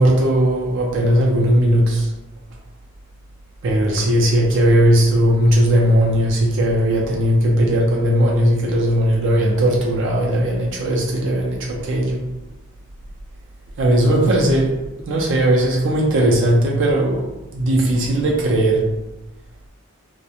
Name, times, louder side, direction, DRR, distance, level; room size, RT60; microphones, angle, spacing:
voice 1, 0.0-2.1 3.6-12.2 13.8-14.8 15.1-18.8, right 1 dB, 60° right, -2 dB, 0.4 m, -17 dB
2.4 x 2.0 x 2.8 m, 1.0 s
head